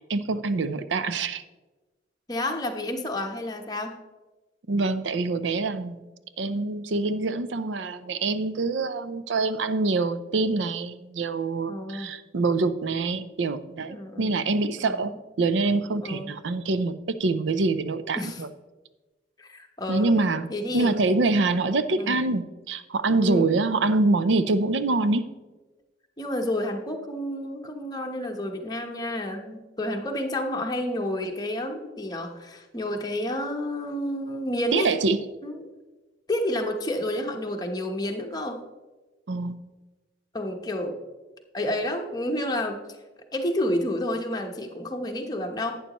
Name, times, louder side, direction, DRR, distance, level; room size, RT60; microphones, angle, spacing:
voice 1, 0.1-1.4 4.7-6.0 6.4-18.5 19.9-20.5 20.7-25.2 34.7-35.2 39.3-39.6, right 3 dB, 85° right, 13 dB, 0.5 m, -25 dB
voice 2, 2.3-4.0 11.7-12.1 13.9-14.4 14.8-15.1 16.0-16.4 18.2-18.4 19.4-20.1 20.5-20.9 21.9-22.2 23.2-23.5 26.2-35.0 35.4-35.6 36.3-38.6 40.3-41.0 41.5-42.8 43.3-45.8, left 1 dB, 20° left, 3 dB, 0.9 m, -30 dB
11.5 x 8.9 x 3.0 m, 1.2 s
head